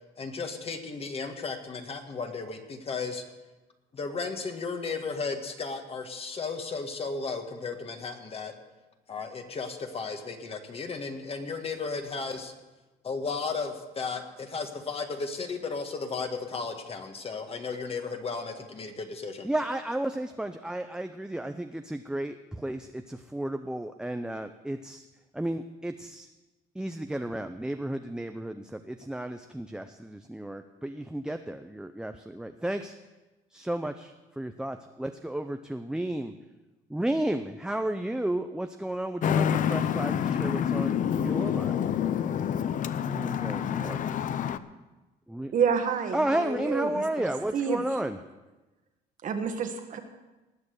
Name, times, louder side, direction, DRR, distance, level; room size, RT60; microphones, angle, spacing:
voice 1, 0.2-3.2 3.9-8.5 9.1-12.5 13.0-19.5, left 4 dB, 35° left, 5 dB, 1.7 m, -34 dB
voice 2, 19.4-25.0 25.3-26.3 26.8-32.9 33.5-36.3 36.9-41.9 43.0-44.0 45.3-45.5 46.1-48.2, right 1 dB, 5° right, 7 dB, 0.5 m, -33 dB
Traffic noise roadway noise, 39.2-44.6, left 9 dB, 50° left, 0.6 m, -27 dB
voice 3, 45.5-47.0 47.5-47.8 49.2-50.0, right 6 dB, 50° right, 6 dB, 1.6 m, -28 dB
19.5 x 6.6 x 6.5 m, 1.1 s
cardioid pair, 110°, 17 cm